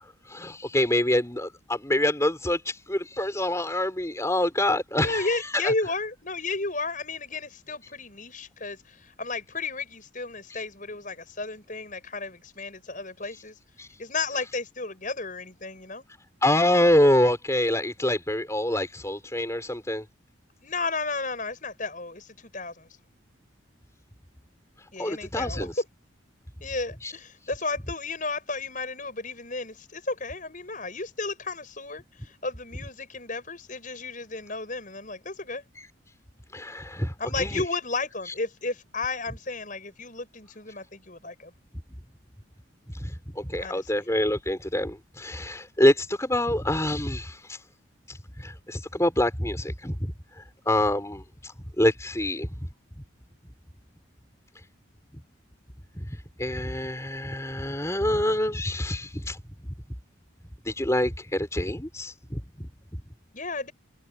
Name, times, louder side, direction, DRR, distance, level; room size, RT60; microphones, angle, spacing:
voice 1, 0.3-5.7 10.5-10.6 13.8-13.9 16.4-20.0 25.0-25.8 27.0-27.1 36.5-37.6 38.3-38.4 42.9-47.6 48.1-52.5 55.1-55.2 55.9-59.4 60.6-62.7, left 1 dB, 15° left, 4.5 m, -26 dB
voice 2, 5.0-13.6 14.0-16.0 20.6-22.9 24.9-25.8 26.6-35.6 37.2-41.5 43.6-44.0 63.3-63.7, left 3 dB, 40° left, 7.3 m, -33 dB
head